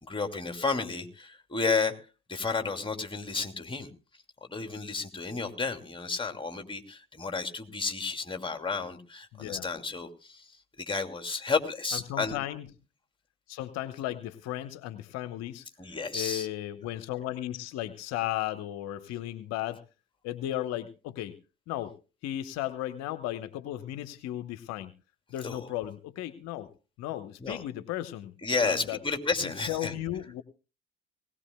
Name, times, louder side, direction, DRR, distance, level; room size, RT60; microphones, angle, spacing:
voice 1, 0.0-1.9 2.3-3.9 4.4-12.4 15.8-16.5 25.4-25.7 27.4-27.6 28.4-29.9, left 4 dB, 15° left, 6 dB, 2.6 m, -32 dB
voice 2, 9.3-9.6 11.9-12.7 13.5-15.7 16.1-19.8 20.2-21.3 21.7-21.9 22.2-24.9 25.3-26.7 27.0-28.3 28.6-29.0 29.4-30.4, left 13 dB, 60° left, 12 dB, 1.0 m, -35 dB
19.5 x 18.0 x 2.2 m, 0.33 s
hypercardioid pair, 60°, 29 cm